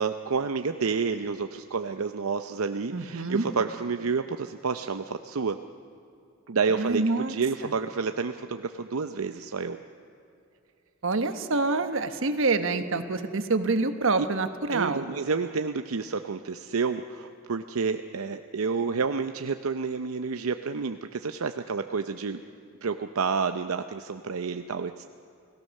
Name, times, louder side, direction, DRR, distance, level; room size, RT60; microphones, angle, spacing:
voice 1, 0.0-5.6 6.5-9.8 14.7-22.4 22.8-25.0, right 5 dB, 85° right, 8 dB, 0.6 m, -29 dB
voice 2, 2.9-3.4 6.7-7.3 11.0-15.0, right 3 dB, 65° right, 9 dB, 1.3 m, -26 dB
29.5 x 17.5 x 6.5 m, 2.5 s
head